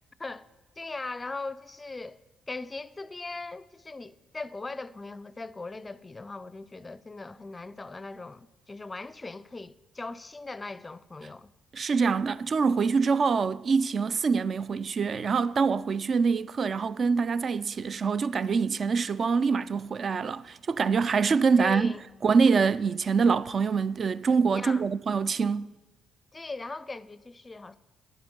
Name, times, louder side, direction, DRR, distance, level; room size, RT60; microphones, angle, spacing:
voice 1, 0.8-2.2 2.5-11.5 21.6-22.0 24.5-24.9 26.3-27.8, left 3 dB, 25° left, 0.4 m, -39 dB
voice 2, 11.7-21.9 22.2-25.7, right 5 dB, 50° right, 0.3 m, -25 dB
10.5 x 8.8 x 5.2 m
supercardioid pair, 60°, 0 cm